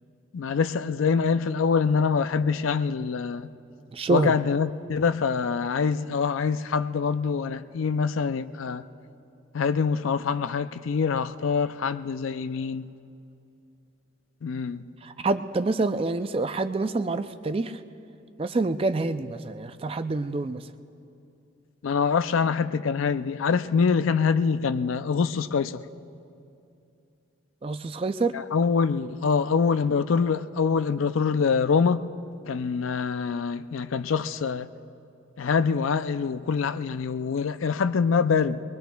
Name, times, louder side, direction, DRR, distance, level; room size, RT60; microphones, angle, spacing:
voice 1, 0.3-3.5 4.1-8.8 9.5-12.9 14.4-14.9 21.8-25.8 28.3-32.0 32.5-34.7 35.4-38.6, left 5 dB, 85° left, 0.4 m, -25 dB
voice 2, 3.9-4.4 15.0-17.8 18.4-20.7 27.6-28.3, right 3 dB, 30° right, 0.4 m, -27 dB
23.5 x 21.5 x 2.3 m
head